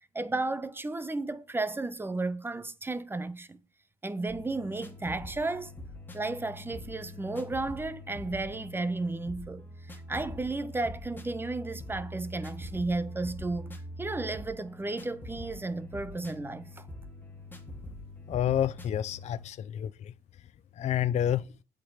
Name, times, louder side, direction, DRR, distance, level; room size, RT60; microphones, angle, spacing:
voice 1, 0.1-3.6 4.0-5.7 6.1-9.6 10.1-16.9, right 2 dB, 15° right, 0.8 m, -33 dB
sound 1, 4.3-19.5, left 1 dB, 10° left, 1.9 m, -44 dB
voice 2, 18.3-20.1 20.8-21.4, left 10 dB, 40° left, 0.4 m, -29 dB
8.5 x 5.2 x 7.7 m
cardioid pair, 110°, 17 cm